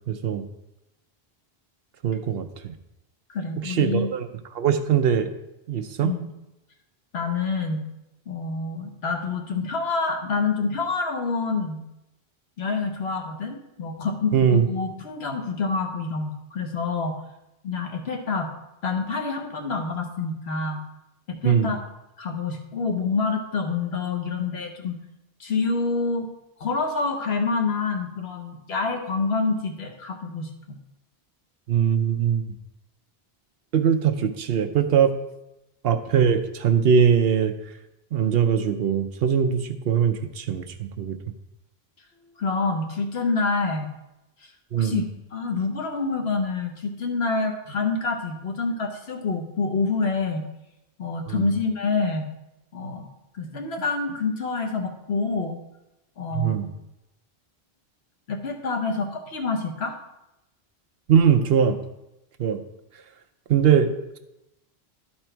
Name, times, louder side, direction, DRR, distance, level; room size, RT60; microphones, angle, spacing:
voice 1, 0.1-0.4 2.0-2.7 3.6-4.2 4.5-5.3 5.7-6.1 14.3-14.6 21.4-21.7 31.7-32.5 33.7-35.2 35.8-37.5 38.1-41.2 44.7-45.0 51.3-51.5 56.3-56.7 61.1-61.8 62.4-62.6 63.5-64.2, right 7 dB, 70° right, 8 dB, 0.8 m, -21 dB
voice 2, 3.3-4.1 6.0-6.3 7.1-7.8 8.3-11.8 12.6-17.2 17.6-18.5 18.8-20.8 21.3-21.8 22.2-25.0 25.4-26.3 26.6-30.8 42.4-43.9 44.7-45.0 45.3-50.4 51.0-52.3 52.7-53.1 53.3-55.6 56.2-56.7 58.3-60.0, left 4 dB, 80° left, 4 dB, 1.2 m, -27 dB
12.0 x 4.3 x 4.5 m, 0.92 s
omnidirectional pair, 1.1 m